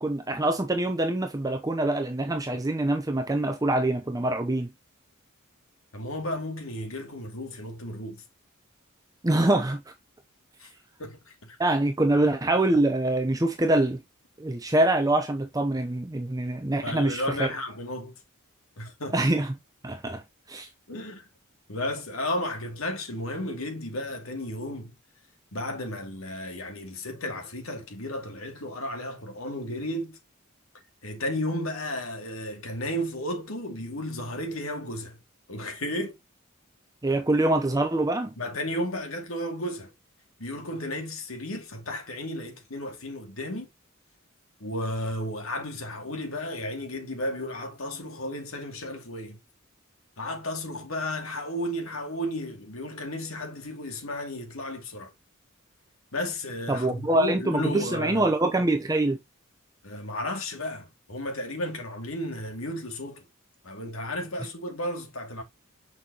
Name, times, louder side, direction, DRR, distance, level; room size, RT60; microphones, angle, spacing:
voice 1, 0.0-4.7 9.2-9.9 11.6-14.0 14.4-17.5 19.1-19.5 19.8-20.2 20.5-20.7 37.0-38.3 56.7-59.2, right 2 dB, 15° right, 0.7 m, -25 dB
voice 2, 5.9-8.2 10.6-10.7 11.0-11.6 12.1-12.3 16.8-18.2 18.8-19.2 20.9-21.3 21.7-25.0 25.5-30.2 31.0-35.2 35.5-36.2 38.4-39.9 40.4-43.7 44.6-49.4 50.2-55.1 56.1-58.3 59.8-63.2 63.6-65.4, left 1 dB, 80° left, 2.4 m, -33 dB
6.9 x 5.6 x 2.9 m
head